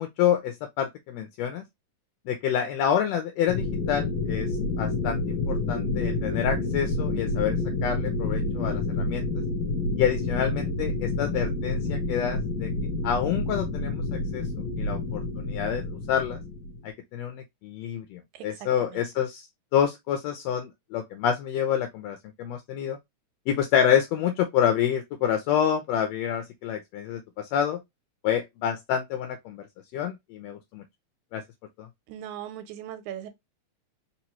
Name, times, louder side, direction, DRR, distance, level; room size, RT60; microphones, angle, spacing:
voice 1, 0.0-1.6 2.3-4.5 4.8-7.6 7.8-9.3 10.0-12.7 13.0-14.0 14.3-14.4 14.8-16.4 17.1-19.4 19.7-23.0 23.5-27.8 28.2-29.6 29.9-30.8 31.3-31.4 31.8-31.9, left 9 dB, 80° left, 1.6 m, -27 dB
sound 1, 3.5-16.8, left 3 dB, 60° left, 1.4 m, -29 dB
voice 2, 18.3-19.1 32.1-33.3, right 11 dB, 85° right, 2.1 m, -39 dB
4.3 x 3.0 x 2.8 m
omnidirectional pair, 3.4 m